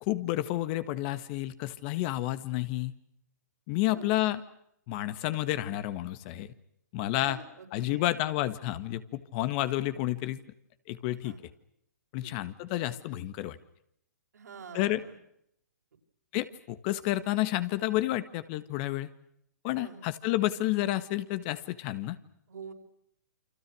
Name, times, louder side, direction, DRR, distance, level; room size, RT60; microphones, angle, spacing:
voice 1, 0.0-2.9 3.7-4.4 4.9-6.5 6.9-7.4 7.7-10.4 10.9-11.3 12.1-13.6 14.7-15.0 16.3-19.1 19.6-22.2, left 15 dB, 35° left, 14 dB, 1.7 m, -30 dB
voice 2, 3.9-4.3 7.2-8.1 11.2-11.4 12.2-12.4 14.3-15.2 19.6-20.0 22.5-22.7, right 5 dB, 80° right, 2 dB, 6.1 m, -46 dB
29.5 x 25.0 x 6.3 m, 0.74 s
hypercardioid pair, 140°, 9 cm